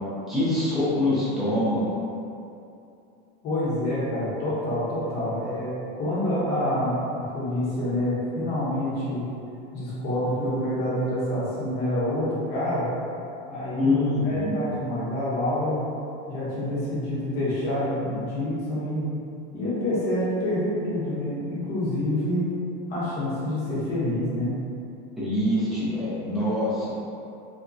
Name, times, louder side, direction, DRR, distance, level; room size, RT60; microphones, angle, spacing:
voice 1, 0.3-2.0 13.8-14.6 25.2-26.9, left 1 dB, ahead, -11 dB, 0.3 m, -24 dB
voice 2, 3.4-9.2 9.7-12.9 13.5-13.9 14.2-15.8 16.3-19.1 19.5-22.5 22.9-24.5, left 1 dB, 30° left, -9 dB, 0.9 m, -27 dB
3.0 x 2.2 x 2.5 m, 2.7 s
supercardioid pair, 170°, 30 cm